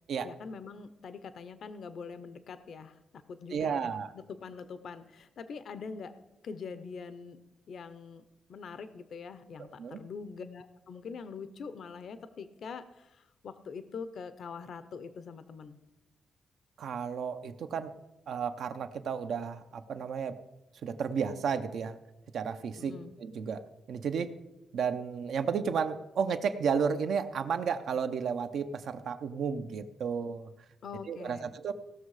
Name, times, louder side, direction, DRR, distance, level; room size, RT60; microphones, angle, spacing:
voice 1, 0.2-6.1 6.4-7.4 7.7-15.8 22.8-23.1 30.8-31.5, left 5 dB, 60° left, 12 dB, 0.7 m, -44 dB
voice 2, 3.5-4.1 9.8-10.0 16.8-17.9 18.3-20.4 20.8-22.0 22.3-23.6 23.9-24.4 24.7-30.5 31.1-31.7, right 6 dB, 70° right, 9 dB, 0.8 m, -32 dB
17.5 x 6.4 x 4.8 m, 0.97 s
cardioid pair, 120°, 0 cm